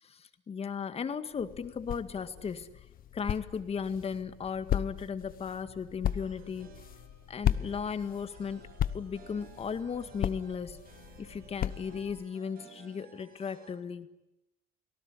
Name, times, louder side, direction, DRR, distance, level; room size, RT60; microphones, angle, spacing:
voice 1, 0.0-2.9 3.1-6.7 7.3-8.6 8.9-10.8 11.2-14.1, left 6 dB, 35° left, 11 dB, 1.9 m, -36 dB
sound 1, 1.3-12.3, left 11 dB, 60° left, 1.1 m, -36 dB
sound 2, 6.1-13.7, right 6 dB, 65° right, 6.4 m, -57 dB
29.5 x 19.0 x 10.0 m, 0.89 s
cardioid pair, 110°, 17 cm